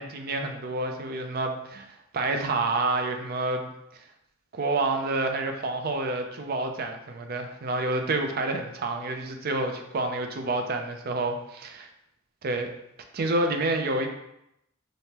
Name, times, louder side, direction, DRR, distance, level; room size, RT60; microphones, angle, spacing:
voice 1, 0.0-3.7 4.5-11.9 12.4-12.7 13.1-14.1, right 2 dB, 50° right, 5 dB, 0.4 m, -28 dB
3.5 x 2.6 x 2.9 m, 0.82 s
head